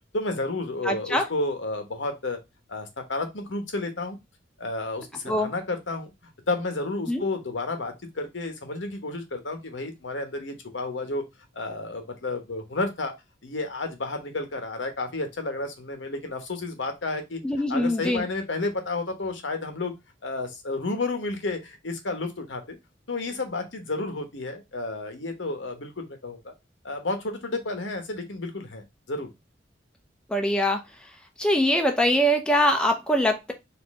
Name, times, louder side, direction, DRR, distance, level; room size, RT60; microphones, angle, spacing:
voice 1, 0.1-2.4 2.7-4.2 4.6-6.1 6.5-11.2 11.5-13.1 13.4-17.4 17.7-19.9 20.2-22.8 23.1-26.5 26.8-29.3, left 2 dB, 75° left, 6 dB, 1.1 m, -31 dB
voice 2, 0.8-1.2 5.3-5.5 7.1-7.2 17.4-18.2 30.3-30.8 31.4-33.5, equal, 5° left, 3 dB, 0.6 m, -23 dB
4.3 x 2.7 x 3.6 m, 0.21 s
head